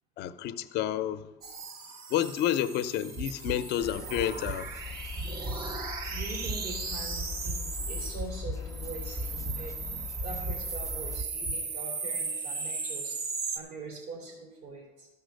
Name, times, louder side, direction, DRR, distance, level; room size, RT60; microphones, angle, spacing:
voice 1, 0.2-1.3 2.1-4.7, left 11 dB, 80° left, 0.6 m, -30 dB
sound 1, 1.4-8.3 8.6-13.6, right 4 dB, 65° right, 1.2 m, -37 dB
sound 2, 3.2-3.6 4.2-4.6 5.2-5.6 6.2-6.6 7.2-7.6 8.2-8.6 9.2-9.6 10.2-10.6 11.2-11.5, right 3 dB, 40° right, 0.9 m, -37 dB
sound 3, 3.8-11.2, left 6 dB, 20° left, 0.3 m, -41 dB
voice 2, 6.1-9.9 10.2-13.2 13.5-15.1, right 3 dB, 80° right, 3.4 m, -43 dB
13.0 x 5.5 x 6.4 m
cardioid pair, 110°, 17 cm